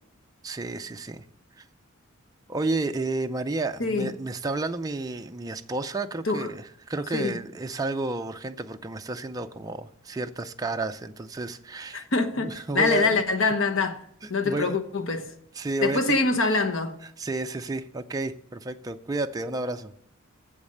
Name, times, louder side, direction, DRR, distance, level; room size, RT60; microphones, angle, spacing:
voice 1, 0.4-1.2 1.6-1.7 2.5-12.1 12.4-13.2 14.2-14.8 15.5-16.3 17.0-19.9, right 2 dB, 15° right, 0.4 m, -31 dB
voice 2, 11.9-14.0 14.3-15.3 15.8-16.9, left 3 dB, 65° left, 1.0 m, -24 dB
8.6 x 7.3 x 6.4 m
head